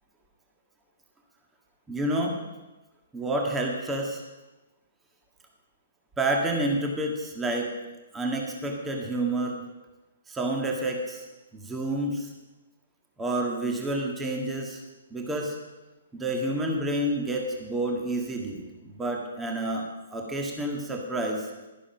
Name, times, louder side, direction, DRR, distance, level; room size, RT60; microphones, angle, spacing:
voice 1, 1.9-2.3 3.1-4.2 6.2-7.7 8.1-9.6 10.3-11.2 11.5-12.3 13.2-14.8 15.1-15.5 16.1-19.8 20.1-21.5, right 1 dB, 10° right, 1 dB, 1.8 m, -29 dB
12.0 x 11.0 x 5.2 m, 1.1 s
figure-of-eight pair, 125°, 0 cm